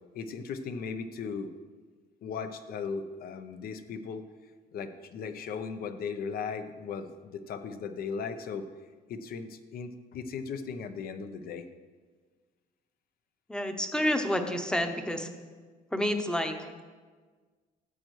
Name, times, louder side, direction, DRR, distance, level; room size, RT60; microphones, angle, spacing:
voice 1, 0.1-1.5 2.2-4.3 4.7-8.7 9.1-11.7, left 5 dB, 60° left, 9 dB, 0.7 m, -37 dB
voice 2, 13.5-15.3 15.9-16.8, equal, 5° left, 6 dB, 0.8 m, -29 dB
13.5 x 7.7 x 3.1 m, 1.5 s
cardioid pair, 110°, 17 cm